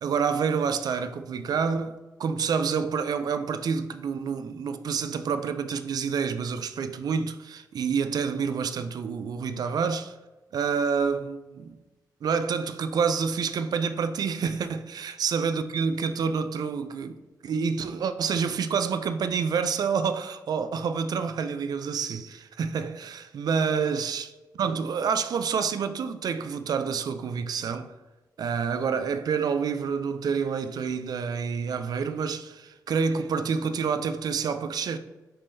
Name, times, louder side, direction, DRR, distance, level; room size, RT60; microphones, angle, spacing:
voice 1, 0.0-1.9 2.2-10.1 10.5-11.8 12.2-24.3 24.5-27.9 28.4-35.0, right 6 dB, 65° right, 0.3 m, -28 dB
5.3 x 3.6 x 2.6 m
cardioid pair, 90°, 7 cm